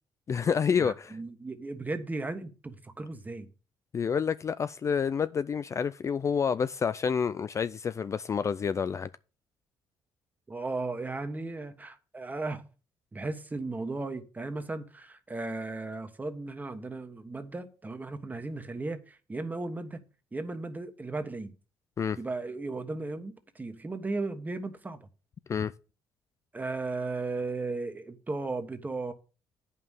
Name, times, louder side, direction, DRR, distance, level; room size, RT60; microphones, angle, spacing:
voice 1, 0.3-1.2 3.9-9.1 22.0-22.2 25.5-25.7, left 6 dB, 35° left, 0.4 m, -28 dB
voice 2, 0.8-3.5 10.5-12.6 13.1-20.0 20.3-21.5 22.2-25.0 26.5-29.1, right 3 dB, 20° right, 1.4 m, -36 dB
9.0 x 5.6 x 6.4 m
cardioid pair, 90°, 9 cm